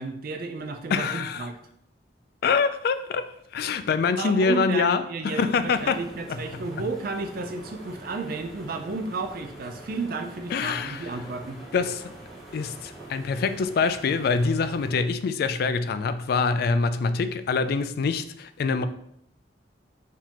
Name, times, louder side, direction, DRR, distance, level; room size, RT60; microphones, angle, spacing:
voice 1, 0.0-1.6 4.2-11.6, right 3 dB, 50° right, 5 dB, 0.4 m, -32 dB
voice 2, 0.9-1.5 2.4-6.0 6.3-6.4 10.5-11.1 11.7-12.0 12.5-18.9, left 5 dB, 55° left, 11 dB, 0.3 m, -25 dB
sound 1, 5.4-15.0, right 1 dB, ahead, 1.2 m, -45 dB
4.7 x 3.6 x 2.9 m, 0.73 s
head